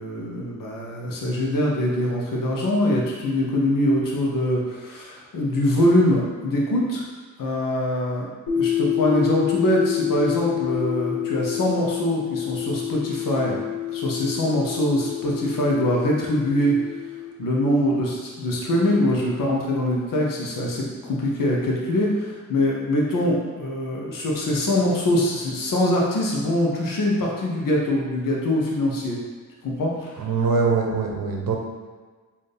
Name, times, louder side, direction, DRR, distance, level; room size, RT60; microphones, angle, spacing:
voice 1, 0.0-7.0 7.4-16.7 17.4-29.2 29.6-30.3, left 1 dB, 80° left, -2 dB, 0.8 m, -23 dB
sound 1, 8.5-17.3, left 12 dB, 55° left, 1.1 m, -28 dB
voice 2, 30.2-31.6, right 4 dB, 80° right, 1 dB, 0.7 m, -23 dB
4.1 x 2.7 x 3.3 m, 1.4 s
cardioid pair, 55°, 32 cm